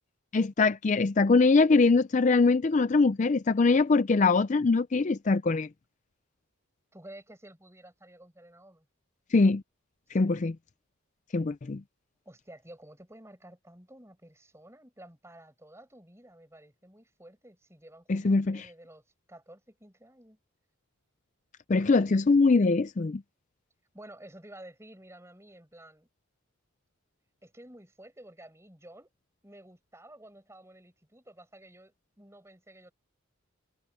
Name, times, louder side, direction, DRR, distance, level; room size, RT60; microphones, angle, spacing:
voice 1, 0.3-5.7 9.3-9.6 10.1-10.6 11.3-11.8 18.1-18.7 21.7-23.2, left 3 dB, 35° left, 0.4 m, -23 dB
voice 2, 6.9-8.8 10.2-10.5 12.2-20.4 23.9-26.1 27.4-29.1 29.4-32.9, right 1 dB, 15° right, 6.5 m, -52 dB
head